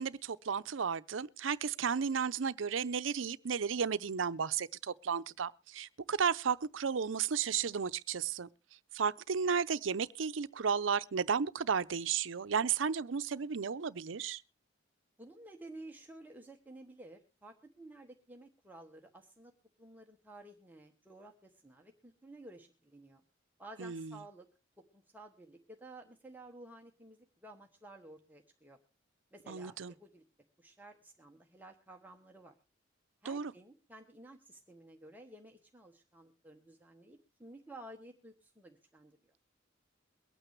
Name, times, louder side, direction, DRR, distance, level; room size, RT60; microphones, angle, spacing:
voice 1, 0.0-8.5 8.9-14.4 23.8-24.2 29.5-29.9 33.3-33.5, right 6 dB, 90° right, 0.6 m, -33 dB
voice 2, 15.2-19.5 19.8-23.2 23.6-24.5 24.8-28.8 29.3-30.2 30.6-32.5 33.2-39.2, right 2 dB, 10° right, 1.2 m, -53 dB
23.0 x 9.1 x 3.2 m
head